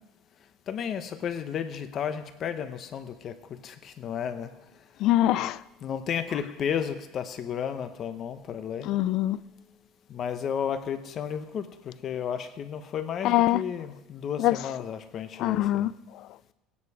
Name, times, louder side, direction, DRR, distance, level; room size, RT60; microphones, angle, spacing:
voice 1, 0.7-3.4 3.6-4.5 5.8-8.9 10.1-15.8, left 8 dB, 35° left, 0.9 m, -33 dB
voice 2, 5.0-5.6 8.9-9.4 13.2-13.6 14.4-14.6 15.4-15.9, left 14 dB, 50° left, 0.4 m, -23 dB
19.0 x 9.6 x 4.9 m
cardioid pair, 160°, 0 cm